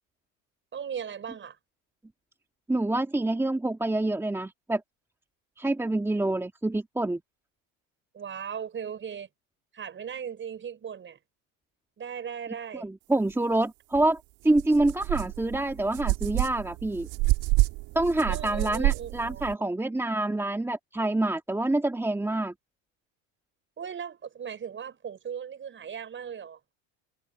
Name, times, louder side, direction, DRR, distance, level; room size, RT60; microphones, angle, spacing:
voice 1, 0.7-1.6 8.1-9.3 9.7-11.2 12.0-12.8 18.3-19.4 23.8-26.6, right 8 dB, 30° right, 6.1 m, -37 dB
voice 2, 2.7-4.8 5.6-7.2 12.8-17.1 17.9-22.5, right 2 dB, 5° right, 2.0 m, -27 dB
sound 1, 13.9-14.1 14.5-19.5, right 22 dB, 70° right, 2.0 m, -28 dB
supercardioid pair, 125°, 38 cm